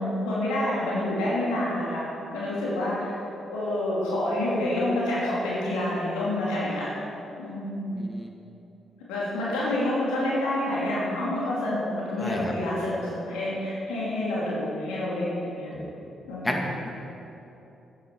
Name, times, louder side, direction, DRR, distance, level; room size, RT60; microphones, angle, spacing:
voice 1, 0.0-2.0 2.3-3.2 3.4-6.9 7.4-8.0 9.1-15.7 16.2-16.6, left 1 dB, 80° left, -7 dB, 2.6 m, -28 dB
voice 2, 7.9-8.3 12.2-12.5 15.7-16.1 16.4-16.9, left 1 dB, 15° left, 1 dB, 1.9 m, -32 dB
10.5 x 9.1 x 4.6 m, 2.9 s
hypercardioid pair, 45°, 0 cm